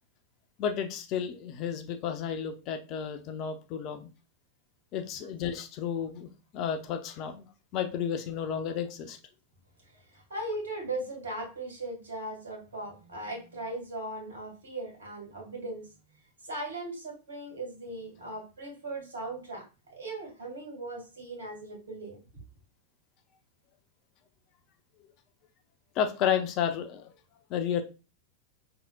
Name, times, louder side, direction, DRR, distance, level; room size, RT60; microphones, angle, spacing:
voice 1, 0.6-4.1 4.9-7.5 7.7-9.2 25.9-27.1 27.5-27.8, left 8 dB, 40° left, 7 dB, 0.7 m, -32 dB
voice 2, 10.1-15.9 16.4-19.6 20.0-22.2, right 2 dB, 65° right, 1 dB, 2.1 m, -38 dB
5.7 x 3.8 x 2.3 m, 0.31 s
figure-of-eight pair, 90°, 0 cm